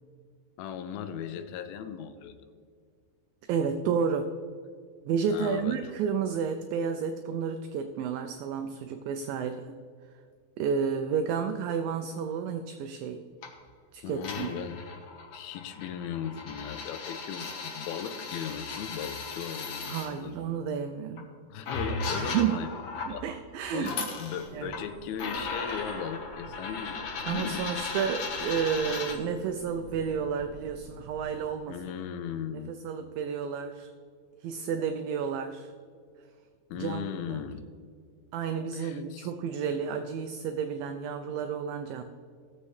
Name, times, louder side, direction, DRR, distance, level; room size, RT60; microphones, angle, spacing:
voice 1, 0.6-2.4 5.3-5.8 14.0-14.8 15.3-20.5 21.5-22.7 23.1-23.2 23.7-27.7 28.9-29.0 31.7-32.7 36.7-37.6 38.7-39.3, left 8 dB, 80° left, 8 dB, 2.5 m, -37 dB
voice 2, 3.5-4.3 5.1-9.8 10.6-13.2 13.9-14.5 19.9-21.3 22.1-22.6 23.1-24.1 24.5-24.8 27.3-31.8 32.5-33.9 34.4-35.7 36.8-37.4 38.3-42.0, right 6 dB, 80° right, 7 dB, 2.1 m, -31 dB
sound 1, 13.4-13.6 14.2-20.1 21.2-21.3 21.7-23.2 23.7-24.8 25.2-29.1, left 4 dB, 60° left, 2.1 m, -36 dB
sound 2, 24.4-31.4, right 1 dB, 65° right, 0.8 m, -50 dB
18.0 x 7.2 x 3.2 m, 2.1 s
omnidirectional pair, 4.4 m